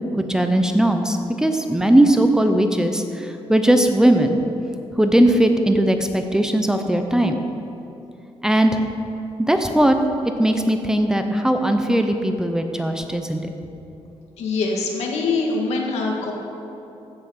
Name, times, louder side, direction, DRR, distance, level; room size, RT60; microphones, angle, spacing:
voice 1, 0.2-4.4 5.0-7.4 8.4-8.8 9.4-10.0 10.4-13.5, right 1 dB, 5° right, 5 dB, 0.6 m, -19 dB
voice 2, 14.4-16.3, left 3 dB, 85° left, 0 dB, 1.9 m, -23 dB
15.0 x 5.8 x 6.4 m, 2.9 s
cardioid pair, 155°, 11 cm